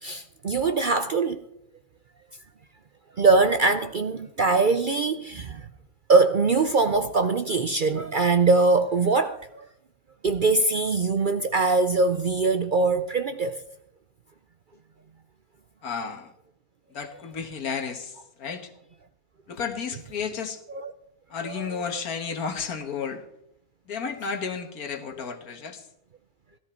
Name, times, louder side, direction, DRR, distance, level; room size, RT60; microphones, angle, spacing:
voice 1, 0.0-1.4 3.2-5.7 6.1-9.7 10.2-13.6 20.7-20.9 21.4-21.6, right 3 dB, 55° right, 0.5 m, -22 dB
voice 2, 15.8-16.3 16.9-18.7 19.5-20.6 21.3-23.2 23.9-25.8, left 6 dB, 75° left, 1.7 m, -32 dB
16.5 x 13.0 x 4.4 m
omnidirectional pair, 1.6 m